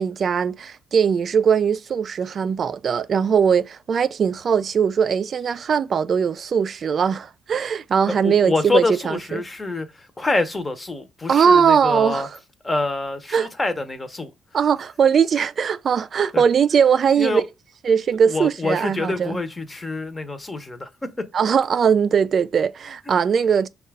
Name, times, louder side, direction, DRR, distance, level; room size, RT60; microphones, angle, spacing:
voice 1, 0.0-9.4 11.3-12.3 13.3-13.5 14.5-17.4 17.8-19.4 21.3-23.7, right 7 dB, 50° right, 0.4 m, -20 dB
voice 2, 8.1-12.3 12.6-14.3 16.3-16.4 17.2-17.4 18.3-21.3, left 3 dB, 20° left, 0.8 m, -26 dB
5.4 x 2.4 x 3.4 m
cardioid pair, 90°, 0 cm